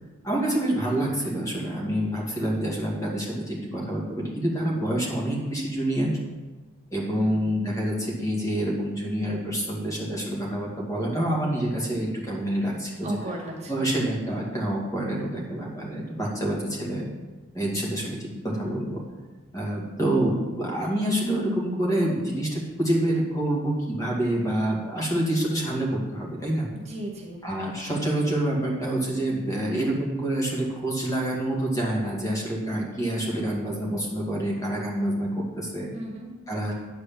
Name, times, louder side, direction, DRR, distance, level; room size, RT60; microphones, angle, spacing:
voice 1, 0.2-6.1 6.9-13.2 13.7-17.1 17.5-19.0 19.5-26.7 27.4-35.9 36.5-36.7, right 1 dB, 15° left, -3 dB, 2.1 m, -27 dB
voice 2, 13.0-13.7 26.7-27.4 35.9-36.3, right 1 dB, 30° right, -2 dB, 1.8 m, -35 dB
10.5 x 4.8 x 7.5 m, 1.2 s
head